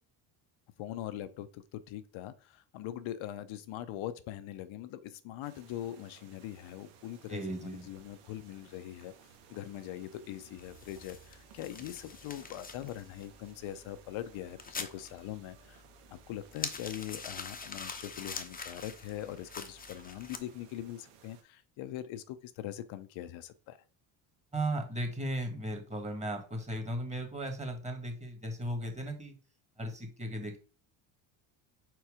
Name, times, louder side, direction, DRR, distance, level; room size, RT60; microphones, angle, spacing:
voice 1, 0.8-9.1 9.5-15.8 16.1-23.8, left 12 dB, 70° left, 0.7 m, -42 dB
sound 1, 5.4-21.4, right 6 dB, 90° right, 1.5 m, -59 dB
voice 2, 7.3-7.9 24.5-29.3 29.8-30.6, right 1 dB, 15° right, 1.7 m, -36 dB
sound 2, 10.6-20.4, left 5 dB, 20° left, 0.7 m, -45 dB
4.6 x 4.5 x 4.8 m
cardioid pair, 120°, 49 cm